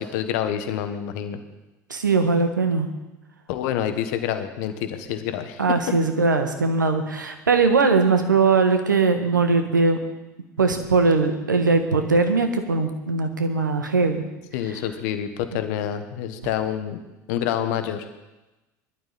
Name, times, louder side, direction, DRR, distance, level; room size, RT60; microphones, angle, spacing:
voice 1, 0.0-1.4 3.5-5.6 14.5-17.0 17.3-18.0, left 10 dB, 65° left, 9 dB, 1.4 m, -27 dB
voice 2, 1.9-2.9 5.6-10.0 10.6-14.2, right 4 dB, 85° right, 7 dB, 1.4 m, -20 dB
19.5 x 12.0 x 4.2 m, 1.0 s
figure-of-eight pair, 70°, 10 cm